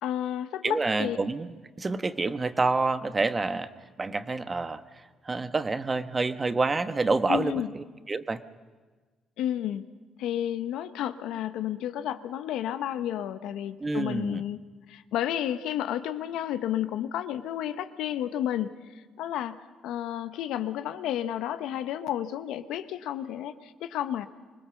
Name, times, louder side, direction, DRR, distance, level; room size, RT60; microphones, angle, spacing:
voice 1, 0.0-1.2 7.3-7.7 9.4-9.8 10.2-14.6 14.9-18.7 19.2-19.6 19.8-24.3, left 11 dB, 80° left, 11 dB, 0.9 m, -31 dB
voice 2, 0.6-3.7 4.0-4.8 5.2-8.4 13.8-14.4, right 3 dB, 30° right, 11 dB, 1.1 m, -28 dB
25.0 x 19.5 x 7.0 m, 1.4 s
supercardioid pair, 65°, 0 cm